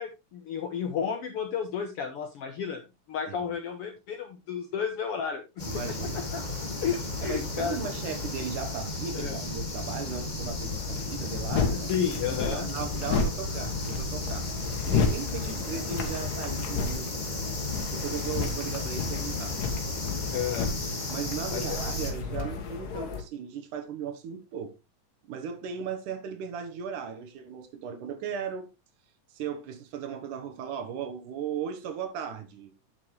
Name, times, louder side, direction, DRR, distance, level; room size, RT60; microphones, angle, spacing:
voice 1, 0.0-6.4 6.8-7.8 9.1-9.4 11.9-12.7 20.3-20.7 21.5-21.8, left 7 dB, 70° left, 1.4 m, -32 dB
sound 1, 5.6-22.1, left 3 dB, 50° left, 0.5 m, -34 dB
voice 2, 5.6-6.3 7.2-14.5 14.9-17.1 17.9-19.6 21.1-24.7 25.3-28.7 29.3-32.7, right 7 dB, 75° right, 2.7 m, -37 dB
sound 2, 10.6-23.2, left 5 dB, 90° left, 3.2 m, -33 dB
9.5 x 7.1 x 3.2 m
omnidirectional pair, 3.7 m